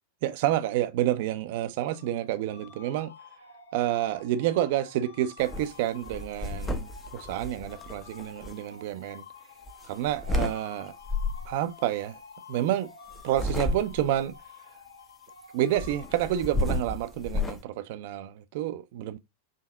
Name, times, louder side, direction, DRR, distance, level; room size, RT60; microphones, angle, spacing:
voice 1, 0.2-3.1 3.7-9.2 9.9-10.9 11.5-12.2 12.5-12.9 13.2-14.3 15.5-19.2, right 12 dB, 50° right, 0.5 m, -29 dB
sound 1, 1.7-17.0, left 4 dB, 70° left, 1.3 m, -50 dB
sound 2, 5.4-5.7 6.0-8.5 9.7-10.6 11.0-11.5 13.1-14.2 15.8-17.6, left 2 dB, 15° left, 0.7 m, -31 dB
5.0 x 2.8 x 3.6 m
figure-of-eight pair, 90°, 0 cm